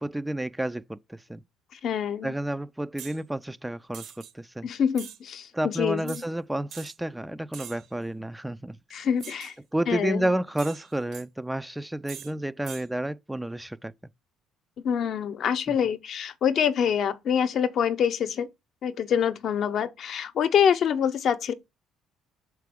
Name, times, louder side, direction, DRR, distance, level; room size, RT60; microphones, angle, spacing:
voice 1, 0.0-1.4 2.2-4.7 5.5-9.1 9.7-13.9 15.7-15.8, right 1 dB, 5° right, 0.3 m, -31 dB
voice 2, 1.7-2.3 4.6-6.2 8.9-9.6 9.9-10.3 14.8-18.5 18.8-21.5, left 8 dB, 55° left, 0.7 m, -26 dB
sound 1, 3.0-3.2 3.9-4.3 4.9-5.2 6.1-6.3 6.7-7.0 7.5-7.9 9.2-9.6 10.6-11.2 12.1-12.3 12.6-12.9, right 9 dB, 65° right, 0.9 m, -43 dB
5.8 x 4.6 x 3.5 m
cardioid pair, 100°, 0 cm